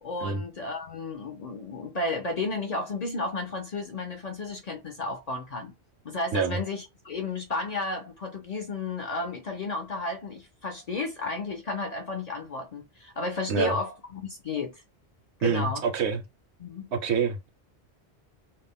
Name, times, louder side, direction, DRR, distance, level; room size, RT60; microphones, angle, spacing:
voice 1, 0.0-5.7 6.0-14.8 15.4-15.8 16.6-16.9, left 3 dB, 50° left, 0.5 m, -33 dB
voice 2, 15.4-16.2 16.9-17.5, right 6 dB, 80° right, 0.9 m, -26 dB
2.4 x 2.1 x 3.5 m
omnidirectional pair, 1.1 m